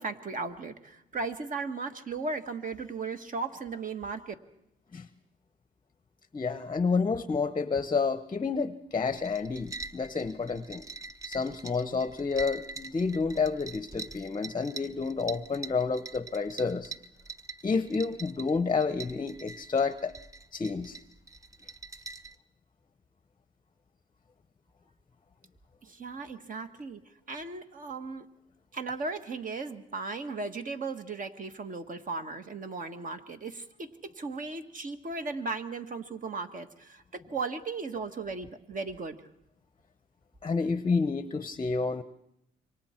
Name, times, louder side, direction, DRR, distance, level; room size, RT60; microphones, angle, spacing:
voice 1, 0.0-4.3 25.8-27.0 27.3-28.3 28.7-39.2, right 4 dB, 45° right, 7 dB, 1.6 m, -36 dB
voice 2, 6.3-10.8 11.3-16.9 17.6-20.1 20.5-21.0 40.4-42.0, left 4 dB, 25° left, 13 dB, 0.8 m, -29 dB
sound 1, 9.0-22.3, right 3 dB, 15° right, 0.8 m, -44 dB
27.0 x 24.0 x 4.4 m, 0.80 s
cardioid pair, 90°, 20 cm